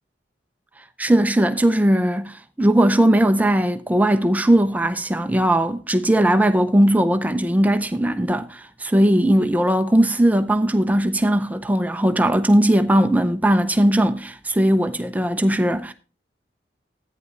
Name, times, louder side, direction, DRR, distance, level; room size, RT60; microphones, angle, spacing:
voice 1, 1.0-15.9, right 1 dB, 10° right, 0.5 m, -18 dB
14.0 x 9.3 x 2.5 m
head